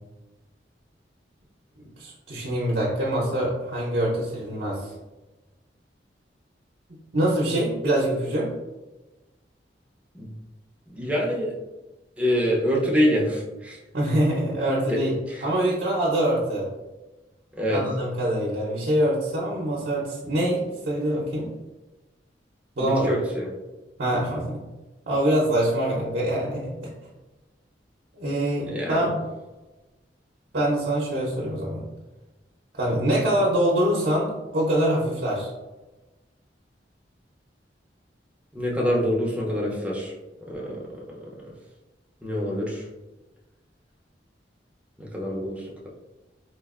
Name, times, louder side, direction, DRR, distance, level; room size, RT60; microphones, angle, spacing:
voice 1, 2.0-4.9 7.1-8.5 13.9-16.7 17.7-21.5 22.8-23.1 24.0-24.6 25.1-26.9 28.2-29.1 30.5-31.8 32.8-35.5, right 1 dB, 60° right, -5 dB, 0.8 m, -24 dB
voice 2, 10.9-11.5 12.2-13.8 14.9-15.0 15.3-15.5 17.6-17.8 22.8-23.5 28.6-29.1 38.5-40.1 40.5-40.8 41.1-41.2 42.2-42.8 45.0-45.6, equal, 10° right, -4 dB, 0.7 m, -25 dB
4.2 x 2.5 x 2.4 m, 1.1 s
head